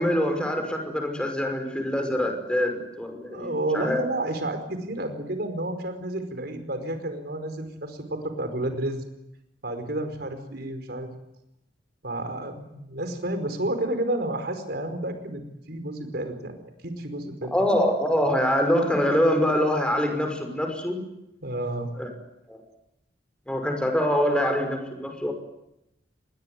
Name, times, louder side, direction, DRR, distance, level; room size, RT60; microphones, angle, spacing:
voice 1, 0.0-4.0 17.5-21.0 22.0-22.1 22.5-22.6 23.5-25.3, equal, 5° left, 5 dB, 5.6 m, -24 dB
voice 2, 3.3-9.0 9.6-11.1 12.0-16.6 16.8-17.5 21.4-21.9, right 1 dB, 60° right, 8 dB, 4.8 m, -30 dB
27.5 x 20.5 x 9.5 m, 0.84 s
head